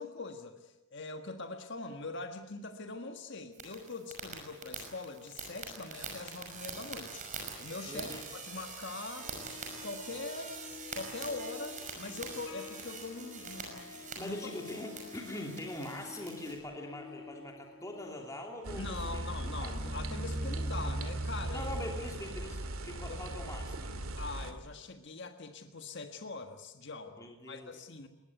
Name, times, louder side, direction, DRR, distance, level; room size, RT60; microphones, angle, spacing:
voice 1, 0.0-9.3 9.8-10.6 10.9-14.5 18.8-21.7 23.1-23.2 24.2-28.1, left 3 dB, 50° left, 6 dB, 1.6 m, -42 dB
sound 1, 3.5-16.6, right 5 dB, 35° right, 5.8 m, -45 dB
Harp, 7.6-21.4, left 5 dB, 75° left, 2.8 m, -52 dB
voice 2, 7.9-8.3 13.9-19.2 19.6-19.7 21.5-23.9 27.2-27.7, left 1 dB, 15° left, 1 dB, 2.9 m, -42 dB
sound 2, 18.6-24.5, right 1 dB, 70° right, 2.4 m, -37 dB
22.5 x 19.5 x 9.4 m, 0.97 s
head